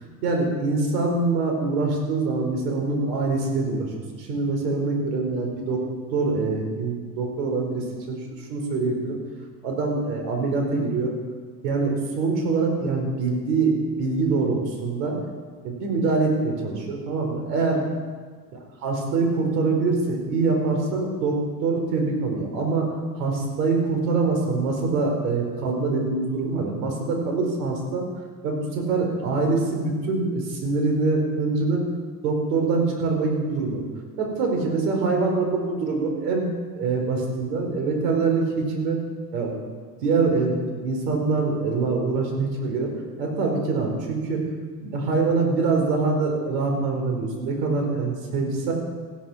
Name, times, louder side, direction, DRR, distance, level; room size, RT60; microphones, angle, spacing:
voice 1, 0.2-5.8 6.1-9.2 9.6-11.1 11.6-15.2 15.6-17.8 18.8-22.9 23.2-28.0 28.4-31.8 32.2-33.9 34.2-39.0 39.3-39.5 40.0-42.9 43.2-44.4 44.8-48.7, right 3 dB, 80° right, 2 dB, 4.8 m, -24 dB
15.5 x 11.5 x 6.3 m, 1.5 s
supercardioid pair, 110°, 47 cm